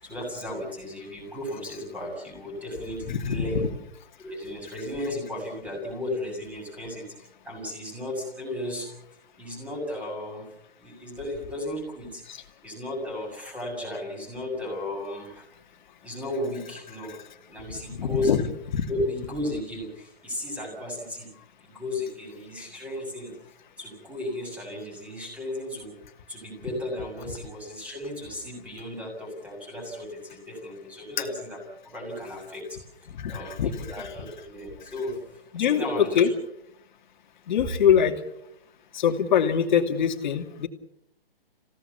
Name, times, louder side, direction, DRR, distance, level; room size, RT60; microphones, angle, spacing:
voice 1, 0.0-3.7 4.2-8.9 9.4-10.5 10.8-15.5 16.0-17.2 17.5-18.3 18.9-23.4 23.8-25.9 26.3-32.8 33.3-36.3, left 1 dB, 5° right, 2 dB, 7.2 m, -35 dB
voice 2, 3.1-3.7 12.3-12.4 17.9-18.4 18.7-18.9 33.1-34.1 35.5-36.3 37.5-38.1 38.9-40.7, left 8 dB, 50° left, 6 dB, 2.7 m, -24 dB
28.0 x 17.0 x 7.2 m, 0.80 s
hypercardioid pair, 150°, 30 cm